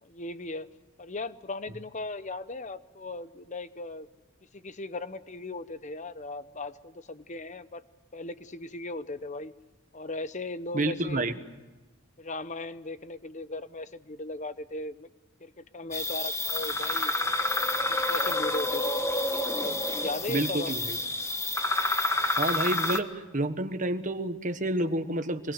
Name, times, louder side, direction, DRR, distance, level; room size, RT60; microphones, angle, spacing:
voice 1, 0.0-0.7 1.0-4.1 4.5-7.8 8.1-9.5 9.9-11.3 12.2-15.1 15.4-17.1 17.9-19.0 19.5-20.9, left 2 dB, 35° left, 13 dB, 1.0 m, -37 dB
voice 2, 10.7-11.3 20.3-21.0 22.4-25.5, right 1 dB, 40° right, 8 dB, 1.4 m, -29 dB
sound 1, 15.9-23.0, left 2 dB, 15° left, 1.4 m, -28 dB
25.0 x 22.0 x 8.1 m, 1.2 s
head